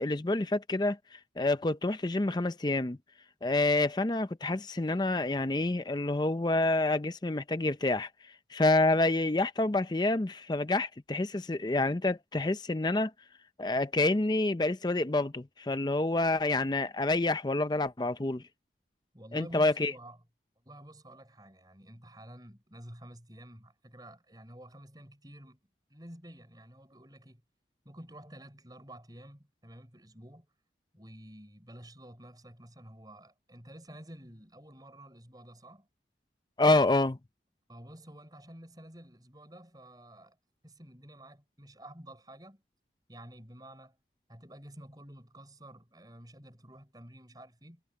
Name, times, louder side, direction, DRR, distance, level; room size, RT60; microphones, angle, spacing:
voice 1, 0.0-3.0 3.4-13.1 13.6-18.4 19.3-19.9 36.6-37.2, left 2 dB, 25° left, 0.5 m, -28 dB
voice 2, 19.1-20.2 20.6-25.6 25.9-27.4 27.8-30.5 30.9-35.9 37.7-40.4 40.6-42.6 43.1-44.0 44.3-47.8, right 1 dB, 20° right, 5.6 m, -50 dB
head